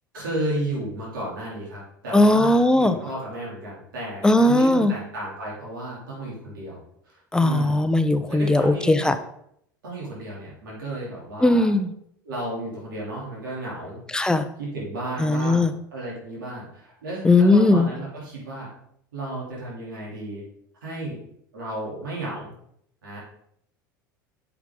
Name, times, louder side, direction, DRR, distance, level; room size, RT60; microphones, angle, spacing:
voice 1, 0.1-6.8 7.0-7.8 8.3-9.1 9.8-11.7 12.2-14.0 14.6-18.7 19.1-20.4 20.8-21.2 21.5-22.5 23.0-23.2, right 1 dB, 80° right, -5 dB, 3.2 m, -33 dB
voice 2, 2.1-2.9 4.2-4.9 7.3-9.2 11.4-11.9 14.1-14.4 15.2-15.7 17.2-17.9, left 2 dB, 5° left, 10 dB, 0.7 m, -18 dB
8.2 x 6.1 x 3.8 m, 0.71 s
hypercardioid pair, 80°, 11 cm